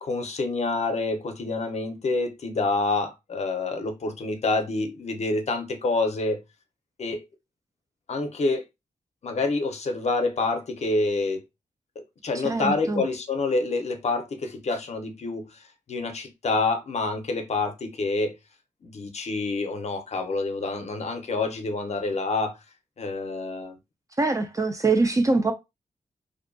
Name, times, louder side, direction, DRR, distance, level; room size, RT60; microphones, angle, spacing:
voice 1, 0.0-6.4 7.0-7.2 8.1-8.6 9.2-11.4 12.0-15.6 15.9-18.4 18.8-22.6 23.0-23.8, left 3 dB, 50° left, 0.5 m, -27 dB
voice 2, 12.4-13.0 24.2-25.5, right 3 dB, 25° right, 0.3 m, -23 dB
2.6 x 2.2 x 2.5 m
wide cardioid pair, 105°, 14 cm